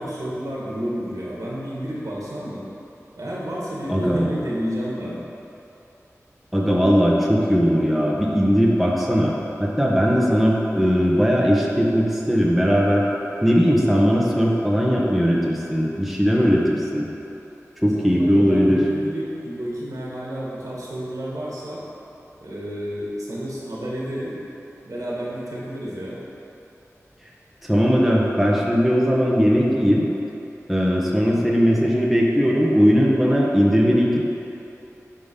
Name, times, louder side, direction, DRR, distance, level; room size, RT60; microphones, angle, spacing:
voice 1, 0.0-2.7 3.2-5.2 18.0-21.8 22.4-24.4 24.8-26.2, equal, 85° right, -6 dB, 1.8 m, -30 dB
voice 2, 3.9-4.3 6.5-9.3 9.6-13.1 13.4-17.1 17.8-18.8 27.6-30.0 30.7-34.2, equal, ahead, -4 dB, 1.1 m, -19 dB
9.3 x 3.8 x 5.4 m, 2.9 s
wide cardioid pair, 65°, 6 cm